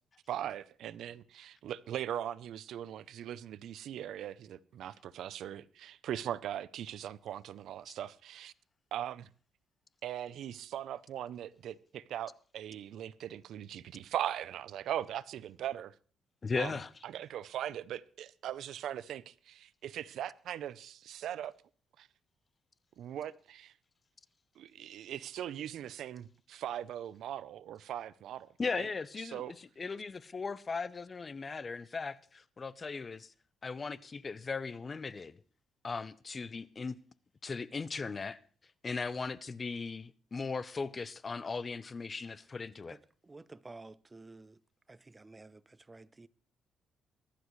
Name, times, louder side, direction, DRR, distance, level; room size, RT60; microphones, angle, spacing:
voice 1, 0.3-8.5 8.9-9.3 10.0-15.9 16.6-16.7 17.0-21.5 22.0-22.1 23.0-23.7 24.6-28.9 29.2-29.5, right 11 dB, 75° right, 0.5 m, -40 dB
voice 2, 16.4-16.9 28.6-33.3 33.6-35.4 35.8-37.0 37.4-38.4 38.8-43.0, left 4 dB, 35° left, 0.6 m, -38 dB
voice 3, 42.9-44.6 44.9-46.3, right 3 dB, 20° right, 0.7 m, -52 dB
23.0 x 11.5 x 3.2 m
cardioid pair, 90°, 0 cm